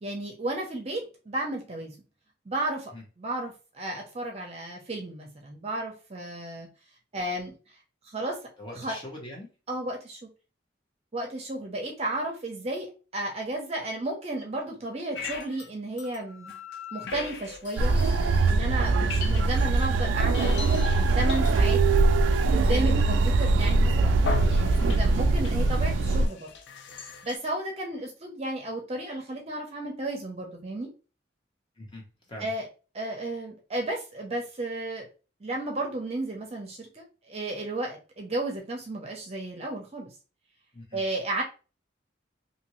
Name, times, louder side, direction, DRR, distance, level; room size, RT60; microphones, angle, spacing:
voice 1, 0.0-1.9 2.5-2.9 3.2-6.7 7.1-7.5 8.0-8.4 8.8-8.9 9.7-10.3 11.1-16.5 16.9-17.9 18.5-20.6 20.9-21.8 22.5-26.5 27.2-30.9 32.4-32.6 32.9-35.1 35.4-40.1 40.9-41.4, right 2 dB, 35° right, 1 dB, 0.6 m, -33 dB
voice 2, 8.6-9.5 18.6-19.1 24.9-25.2 31.8-32.5 40.7-41.0, left 1 dB, 25° left, -1 dB, 1.0 m, -42 dB
sound 1, 15.1-15.7 16.0-18.5 18.8-19.8 20.2-27.4, left 5 dB, 70° left, 0.4 m, -40 dB
sound 2, 17.8-26.3, right 3 dB, 85° right, 0.3 m, -22 dB
2.7 x 2.6 x 3.0 m, 0.34 s
head